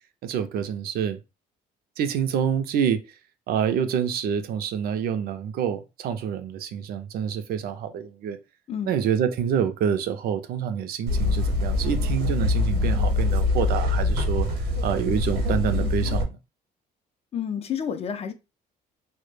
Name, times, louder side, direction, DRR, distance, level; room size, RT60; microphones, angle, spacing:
voice 1, 0.2-1.2 2.0-3.0 3.5-8.4 8.9-14.5 14.8-16.4, right 8 dB, 65° right, 0.4 m, -27 dB
sound 1, 11.1-16.2, left 2 dB, 85° right, 0.8 m, -24 dB
voice 2, 17.3-18.3, left 8 dB, 35° left, 0.4 m, -30 dB
2.1 x 2.0 x 3.0 m
cardioid pair, 110°, 17 cm